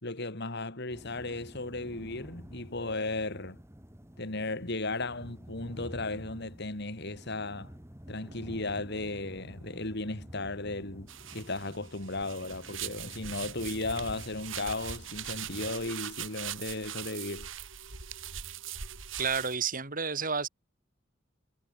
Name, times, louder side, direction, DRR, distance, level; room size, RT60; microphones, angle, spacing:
voice 1, 0.0-3.6 4.2-7.7 8.1-17.5, left 2 dB, 60° left, 3.7 m, -35 dB
sound 1, 0.9-15.7, equal, 15° right, 3.0 m, -49 dB
sound 2, 11.1-19.6, right 9 dB, 80° right, 3.0 m, -41 dB
voice 2, 19.2-20.5, right 6 dB, 45° right, 3.7 m, -30 dB
head